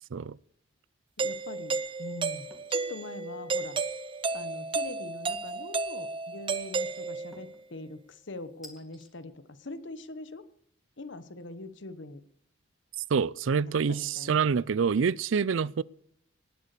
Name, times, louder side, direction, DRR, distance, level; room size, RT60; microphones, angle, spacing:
voice 1, 1.2-3.8 4.3-10.4 11.0-12.2 13.6-14.4, left 2 dB, 65° left, 1.1 m, -43 dB
Doorbell, 1.2-7.5, right 4 dB, 25° right, 0.5 m, -33 dB
sound 1, 2.5-2.8 3.3-3.7 5.5-6.0 7.3-7.7 8.6-9.1, equal, ahead, 2.4 m, -54 dB
voice 2, 13.1-15.8, right 6 dB, 75° right, 0.4 m, -26 dB
18.5 x 8.4 x 6.7 m
head